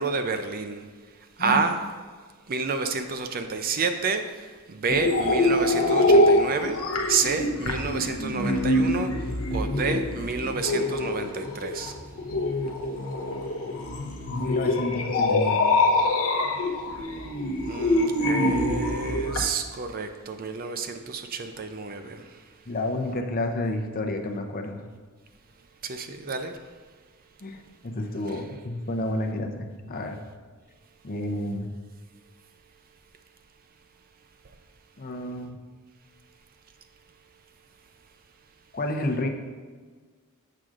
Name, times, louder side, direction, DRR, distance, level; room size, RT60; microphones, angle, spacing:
voice 1, 0.0-1.8 2.5-6.8 7.1-12.0 17.6-22.5 25.8-26.6, right 4 dB, 40° right, 7 dB, 0.5 m, -29 dB
sound 1, 4.9-19.5, left 1 dB, 75° left, 0.7 m, -24 dB
voice 2, 14.3-15.6 22.7-24.8 27.4-30.2 31.0-31.7 35.0-35.6 38.7-39.3, left 1 dB, 40° left, 4 dB, 0.7 m, -30 dB
7.6 x 6.3 x 3.7 m, 1.5 s
head